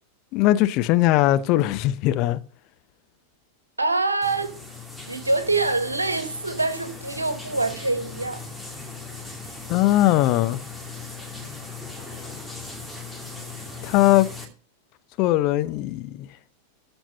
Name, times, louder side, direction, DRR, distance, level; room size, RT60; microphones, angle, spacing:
voice 1, 0.3-2.4 9.7-10.6 13.8-14.3 15.2-16.3, left 15 dB, 40° left, 0.8 m, -20 dB
voice 2, 3.8-4.6 5.0-8.4, right 3 dB, 80° right, 1.3 m, -25 dB
sound 1, 4.2-14.5, left 4 dB, ahead, 2.4 m, -38 dB
13.5 x 4.5 x 6.7 m
figure-of-eight pair, 90°, 0 cm